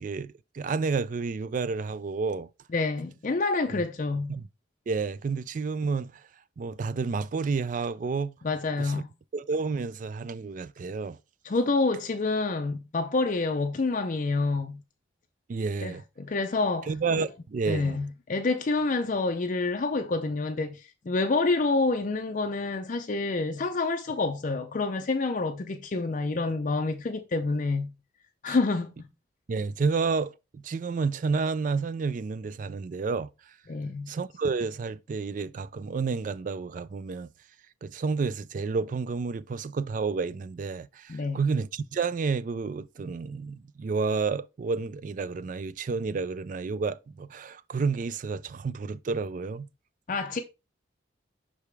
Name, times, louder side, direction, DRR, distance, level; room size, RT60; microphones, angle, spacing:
voice 1, 0.0-2.5 3.7-3.8 4.3-4.5 4.9-6.1 6.6-8.3 8.8-9.0 9.3-11.2 15.5-16.0 16.9-18.0 28.5-28.6 29.5-33.3 34.1-37.3 37.8-49.7, right 4 dB, 40° right, 0.3 m, -30 dB
voice 2, 2.7-4.3 8.4-9.1 11.4-14.8 15.8-17.3 17.7-27.9 28.4-29.1 33.7-34.1 41.1-41.4 50.1-50.4, left 3 dB, 40° left, 0.4 m, -28 dB
5.8 x 4.9 x 3.3 m
head